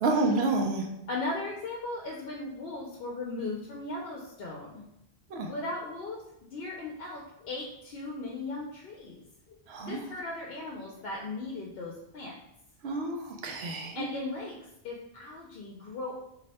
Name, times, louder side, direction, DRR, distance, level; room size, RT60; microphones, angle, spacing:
voice 1, 0.0-0.8 5.3-5.5 9.7-10.0 12.8-14.1, right 2 dB, 80° right, 2 dB, 0.8 m, -29 dB
voice 2, 0.9-4.8 5.5-6.2 6.5-12.4 13.9-14.6 14.8-16.1, left 2 dB, 70° left, -2 dB, 0.7 m, -37 dB
2.7 x 2.1 x 4.0 m, 0.82 s
omnidirectional pair, 1.1 m